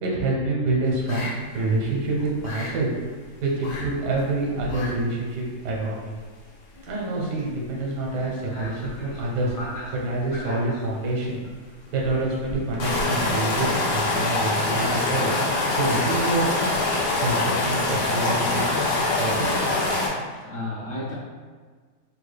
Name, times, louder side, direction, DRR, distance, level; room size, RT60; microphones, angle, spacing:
voice 1, 0.0-2.9 3.4-6.1 6.8-9.5 10.0-11.4 11.9-15.3 15.7-16.5 17.2-18.7 19.2-19.5, right 2 dB, 90° right, -2 dB, 1.4 m, -27 dB
sound 1, 1.1-1.3 1.7-1.9 2.2-2.7 3.6-3.9 4.1-4.2 4.6-4.9 5.2-5.3 6.0-6.1 8.8-9.1 9.5-9.6 12.5-20.1, left 2 dB, 85° left, 1.3 m, -24 dB
voice 2, 8.5-10.9 11.8-11.9 12.2-12.4 20.0-21.1, left 1 dB, 60° left, -6 dB, 1.2 m, -38 dB
3.6 x 2.3 x 3.2 m, 1.5 s
omnidirectional pair, 1.7 m